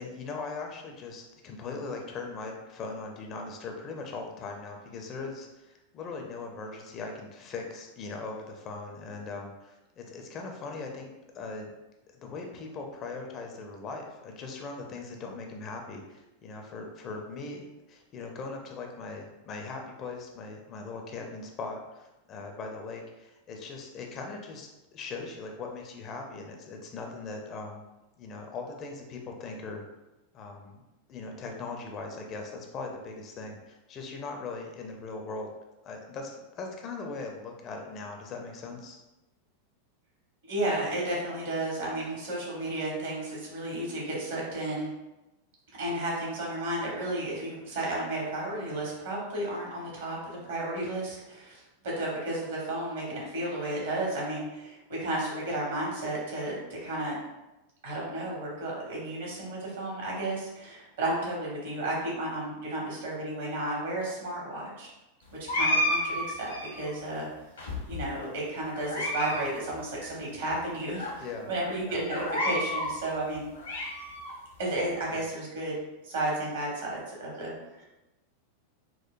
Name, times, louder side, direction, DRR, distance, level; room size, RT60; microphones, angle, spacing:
voice 1, 0.0-11.7 12.1-17.6 17.9-27.8 28.2-29.8 30.3-30.8 31.1-35.5 35.8-39.0 71.2-71.5 71.9-72.0 75.1-75.2, left 3 dB, 30° left, 2 dB, 0.5 m, -40 dB
voice 2, 40.4-44.9 45.8-57.2 57.8-64.9 65.4-67.3 67.9-73.5 74.6-77.9, right 1 dB, 60° right, -4 dB, 1.3 m, -33 dB
sound 1, 65.5-66.9 67.6-68.2 68.7-69.4 69.7-69.8 70.5-70.6 71.0-71.1 72.1-72.9 73.4-74.3, left 1 dB, 70° left, 0.8 m, -30 dB
4.5 x 2.1 x 2.5 m, 1.0 s
figure-of-eight pair, 90°, 0 cm